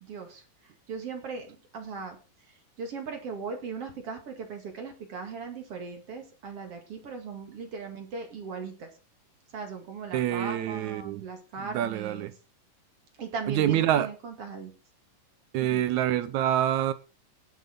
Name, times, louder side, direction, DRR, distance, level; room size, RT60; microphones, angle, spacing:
voice 1, 0.0-2.2 2.5-8.9 9.5-12.3 13.2-14.7 15.6-15.8, right 5 dB, 50° right, 2.7 m, -38 dB
voice 2, 10.1-11.2 11.7-12.3 13.6-14.1 15.5-16.9, right 11 dB, 75° right, 1.9 m, -26 dB
18.5 x 7.3 x 3.9 m
omnidirectional pair, 3.9 m